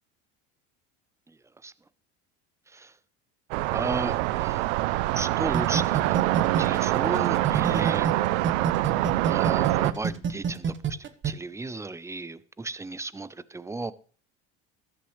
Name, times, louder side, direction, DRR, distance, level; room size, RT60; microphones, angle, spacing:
sound 1, 3.5-9.9, right 17 dB, 80° right, 0.6 m, -25 dB
voice 1, 3.7-4.7 5.1-6.2 6.6-8.1 9.2-11.0 11.2-13.9, right 3 dB, 10° right, 0.6 m, -35 dB
sound 2, 5.5-8.1 8.4-11.3, right 6 dB, 35° right, 1.2 m, -27 dB
14.0 x 11.5 x 3.2 m
supercardioid pair, 85°, 34 cm